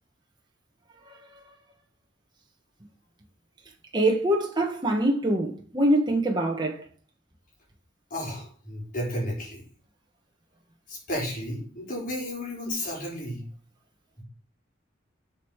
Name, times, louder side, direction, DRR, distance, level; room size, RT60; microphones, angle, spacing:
voice 1, 3.9-6.8, right 1 dB, 25° right, 1.5 m, -24 dB
voice 2, 8.1-9.6 10.9-13.4, equal, 45° left, 4.7 m, -33 dB
8.1 x 6.5 x 6.5 m
head